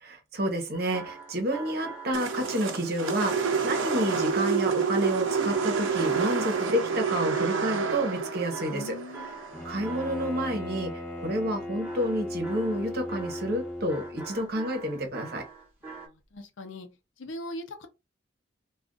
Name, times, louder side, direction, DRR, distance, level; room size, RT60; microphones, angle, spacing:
voice 1, 0.0-10.9 11.2-15.4, equal, 50° right, 0.9 m, -30 dB
sound 1, 0.7-4.5 5.5-7.6 7.9-10.6 11.8-16.1, right 3 dB, 15° right, 1.1 m, -45 dB
sound 2, 2.1-10.4, right 5 dB, 85° right, 0.6 m, -29 dB
voice 2, 8.7-9.3 16.0-16.9 17.2-17.9, left 1 dB, 75° left, 0.6 m, -40 dB
Bowed string instrument, 9.5-14.4, left 1 dB, 10° left, 0.7 m, -37 dB
2.5 x 2.3 x 3.6 m
head